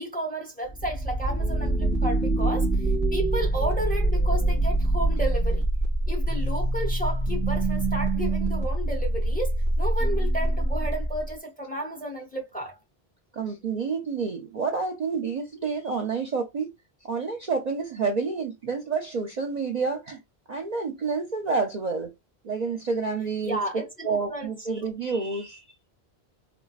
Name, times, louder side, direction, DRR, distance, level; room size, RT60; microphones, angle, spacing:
voice 1, 0.0-2.7 3.1-5.6 6.1-12.8 21.4-21.5 23.4-24.7, right 1 dB, 10° left, 0.9 m, -32 dB
sound 1, 0.7-11.3, right 1 dB, 35° left, 2.4 m, -25 dB
voice 2, 13.3-16.7 17.1-20.2 20.5-22.1 22.4-25.6, right 4 dB, 50° right, 0.6 m, -29 dB
4.4 x 2.2 x 2.3 m
omnidirectional pair, 1.1 m